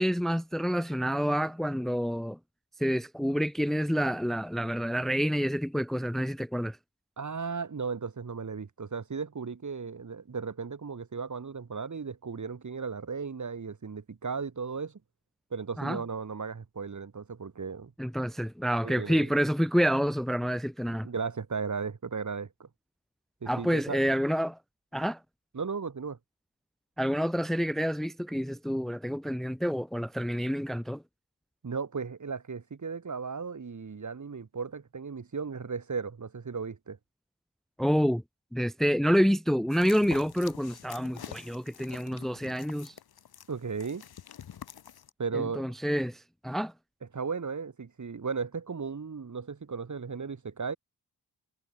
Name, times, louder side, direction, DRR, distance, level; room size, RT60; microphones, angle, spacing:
voice 1, 0.0-2.4 2.8-6.8 15.8-16.0 18.0-21.1 23.5-24.6 24.9-25.2 27.0-31.0 37.8-38.2 38.5-42.9 45.3-46.7, equal, ahead, 1.0 m, -28 dB
voice 2, 7.2-15.0 15.5-17.9 18.8-19.3 21.0-22.7 23.4-24.0 25.5-26.2 31.6-37.0 43.5-44.0 45.2-45.6 47.1-50.8, right 5 dB, 50° right, 5.9 m, -35 dB
sound 1, 39.7-45.1, left 9 dB, 75° left, 2.4 m, -47 dB
cardioid pair, 60°, 37 cm